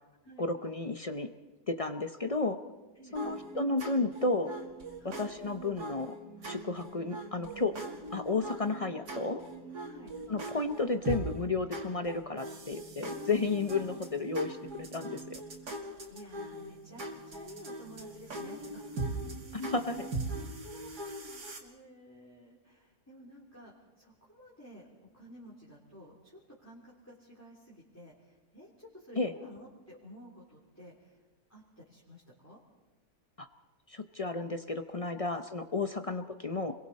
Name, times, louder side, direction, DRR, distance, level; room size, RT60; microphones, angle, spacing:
voice 1, 0.4-1.3 1.7-2.6 3.1-4.5 5.2-6.2 6.4-7.7 8.1-9.4 10.3-15.4 19.5-20.1 29.2-29.3 33.4-33.5 33.9-36.7, left 3 dB, 55° left, 8 dB, 0.4 m, -32 dB
voice 2, 2.9-3.4 5.0-5.2 9.9-10.1 16.1-19.0 20.7-31.2 31.5-32.6 35.3-35.6 36.0-36.2, equal, 10° left, -6 dB, 3.2 m, -53 dB
sound 1, 3.1-21.6, right 2 dB, 70° right, 2.9 m, -41 dB
29.5 x 22.5 x 4.2 m, 1.2 s
omnidirectional pair, 1.8 m